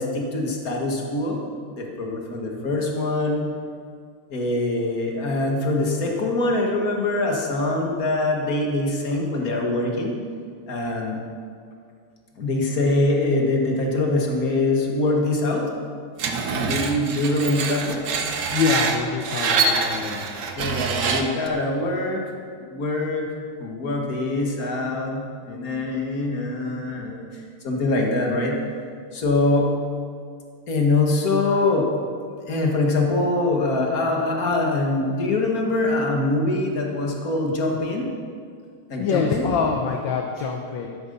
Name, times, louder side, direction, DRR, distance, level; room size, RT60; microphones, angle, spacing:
voice 1, 0.0-1.4 1.7-3.4 4.3-10.2 10.7-11.2 12.4-15.7 16.6-18.0 20.6-22.2 22.6-23.3 23.6-28.6 29.1-29.7 30.7-31.9 32.5-38.1 38.9-39.5, left 2 dB, 45° left, 0 dB, 2.2 m, -23 dB
Screech, 16.2-21.5, right 4 dB, 60° right, 1.5 m, -25 dB
voice 2, 18.5-20.3 39.0-41.0, left 6 dB, 65° left, 3 dB, 1.5 m, -25 dB
12.5 x 12.0 x 5.5 m, 2.2 s
omnidirectional pair, 2.4 m